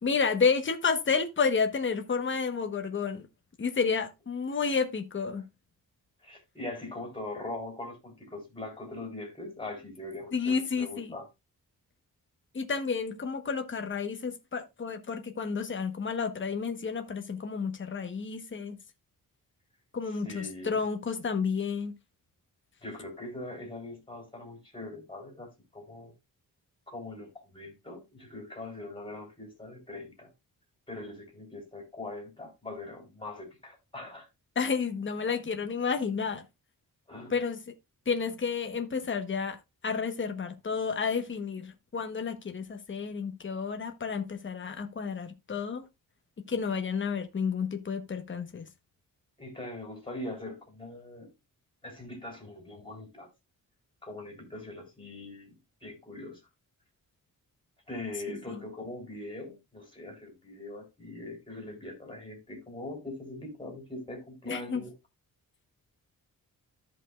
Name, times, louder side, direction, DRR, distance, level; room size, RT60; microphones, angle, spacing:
voice 1, 0.0-3.3 3.6-5.4 10.3-11.1 12.5-18.8 19.9-21.9 34.5-36.4 37.3-37.6 38.1-39.6 39.8-45.8 46.5-48.7 58.3-58.6 64.5-64.8, left 5 dB, 35° left, 1.1 m, -31 dB
voice 2, 6.2-11.3 20.2-20.8 22.8-26.1 26.9-30.3 30.9-34.3 37.1-37.4 49.4-51.3 51.8-53.3 54.0-56.4 57.9-64.9, left 2 dB, 15° left, 3.7 m, -42 dB
14.5 x 5.5 x 2.4 m
wide cardioid pair, 130°, 35 cm